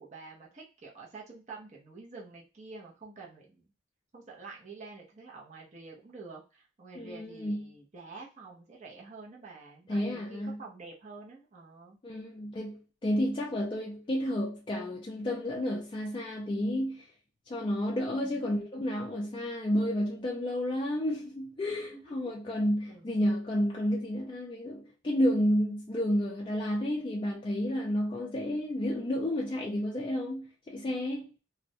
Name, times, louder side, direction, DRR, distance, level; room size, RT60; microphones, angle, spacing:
voice 1, 0.0-3.6 4.1-12.0 18.2-18.6 21.9-22.3 22.9-23.1, right 3 dB, 35° right, 0.5 m, -48 dB
voice 2, 7.0-7.7 9.9-10.6 12.0-17.0 17.5-31.3, equal, 25° left, 0.3 m, -31 dB
2.3 x 2.0 x 2.6 m
head